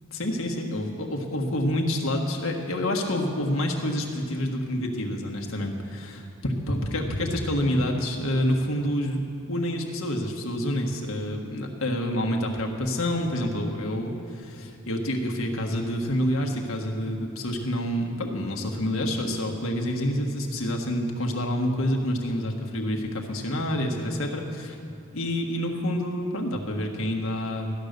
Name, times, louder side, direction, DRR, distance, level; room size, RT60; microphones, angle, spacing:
voice 1, 0.1-24.8 25.1-27.7, left 1 dB, 85° left, 1 dB, 1.5 m, -28 dB
14.0 x 10.5 x 6.7 m, 2.8 s
head